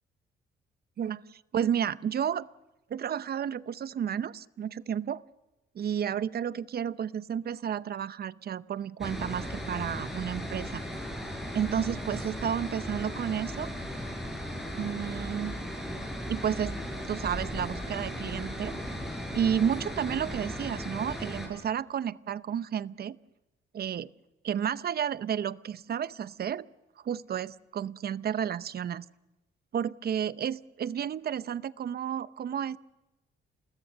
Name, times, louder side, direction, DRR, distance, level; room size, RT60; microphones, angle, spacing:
voice 1, 1.0-2.5 2.9-5.2 5.7-10.8 11.5-13.7 14.8-15.5 16.3-16.8 17.1-18.8 19.3-23.2 23.7-24.1 24.4-26.6 27.0-29.1 29.7-32.8, right 8 dB, 50° right, 16 dB, 0.8 m, -31 dB
sound 1, 9.0-21.5, equal, ahead, 7.6 m, -36 dB
28.0 x 20.0 x 6.6 m, 1.0 s
cardioid pair, 90°, 20 cm